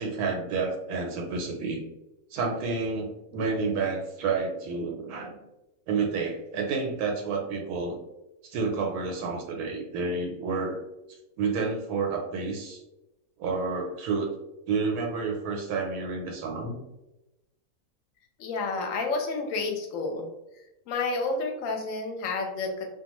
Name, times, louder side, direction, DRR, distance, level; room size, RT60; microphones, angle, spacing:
voice 1, 0.0-1.8 2.3-5.4 5.9-8.0 8.4-10.8 11.4-12.8 13.4-14.3 14.7-16.8, right 4 dB, 90° right, 1 dB, 1.1 m, -30 dB
voice 2, 18.4-20.3 20.9-22.9, left 3 dB, 70° left, 3 dB, 0.9 m, -30 dB
2.4 x 2.3 x 2.9 m, 0.95 s
omnidirectional pair, 1.6 m